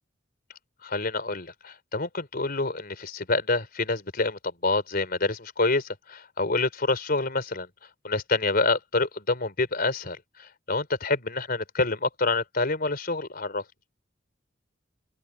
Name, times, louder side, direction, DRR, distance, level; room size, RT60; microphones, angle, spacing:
voice 1, 0.8-7.7 8.0-10.2 10.7-13.6, left 3 dB, 55° left, 4.1 m, -27 dB
open air
head